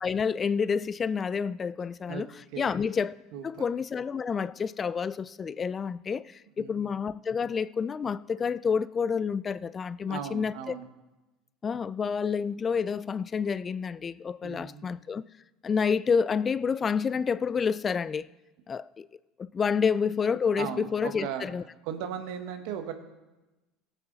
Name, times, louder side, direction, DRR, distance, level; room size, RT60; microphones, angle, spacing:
voice 1, 0.0-2.3 2.6-3.1 3.4-10.7 11.6-15.2 15.6-18.3 18.7-19.1 19.4-21.6, left 6 dB, 30° left, 0.3 m, -29 dB
voice 2, 3.3-3.6 6.6-6.9 10.0-10.9 14.4-14.9 20.6-21.5 21.8-22.9, right 8 dB, 70° right, 1.4 m, -37 dB
16.5 x 8.2 x 4.0 m
hypercardioid pair, 75°, 0 cm